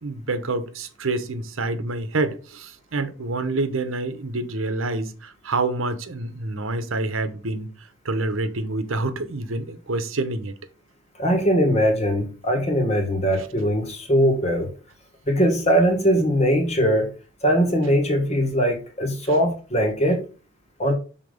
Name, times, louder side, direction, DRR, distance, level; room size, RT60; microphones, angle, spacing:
voice 1, 0.0-7.7 8.0-10.5, right 2 dB, 85° right, 1.0 m, -27 dB
voice 2, 11.2-14.7 15.2-17.1 17.4-20.2 20.8-20.9, equal, 35° left, 1.6 m, -21 dB
6.2 x 4.0 x 5.2 m
head